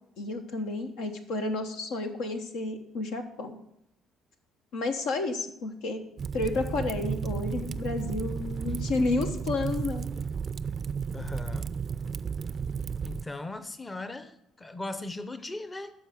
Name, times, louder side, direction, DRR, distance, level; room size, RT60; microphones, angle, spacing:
voice 1, 0.2-3.6 4.7-6.0 6.3-10.0, left 3 dB, 75° left, 5 dB, 1.1 m, -31 dB
Fire, 6.2-13.3, right 6 dB, 45° right, 0.4 m, -33 dB
voice 2, 11.1-11.7 13.0-15.9, left 2 dB, 20° left, 11 dB, 0.8 m, -38 dB
12.5 x 4.7 x 6.5 m, 0.81 s
hypercardioid pair, 60°, 0 cm